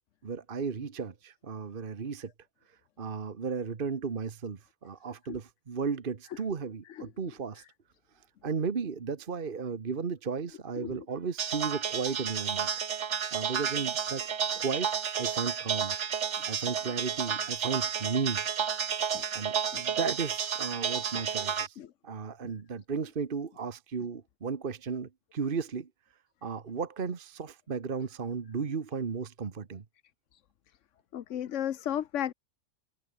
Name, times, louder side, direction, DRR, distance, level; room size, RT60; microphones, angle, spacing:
voice 1, 0.2-2.3 2.7-7.6 8.4-12.7 13.3-14.2 14.6-14.9 15.1-16.0 16.5-18.4 19.3-21.8 22.0-25.9 26.4-29.8, right 5 dB, 50° right, 1.4 m, -34 dB
sound 1, 11.4-21.7, right 7 dB, 80° right, 1.5 m, -31 dB
voice 2, 31.1-32.3, left 10 dB, 90° left, 1.2 m, -32 dB
omnidirectional pair, 1.2 m